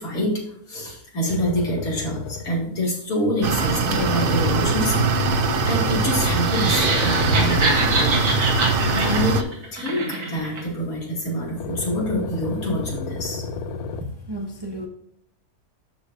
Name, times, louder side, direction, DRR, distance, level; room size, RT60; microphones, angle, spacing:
voice 1, 0.0-5.3 5.7-8.5 8.9-9.4 9.7-13.5, equal, 70° left, 3.0 m, -26 dB
sound 1, 1.3-2.7 3.9-9.7 11.6-14.0, left 5 dB, 90° left, 1.2 m, -32 dB
sound 2, 3.4-9.4, right 4 dB, 55° right, 0.6 m, -22 dB
sound 3, 6.4-10.6, right 2 dB, 80° right, 2.3 m, -25 dB
voice 2, 13.9-14.9, equal, 20° right, 1.0 m, -33 dB
12.5 x 4.8 x 2.6 m
omnidirectional pair, 1.6 m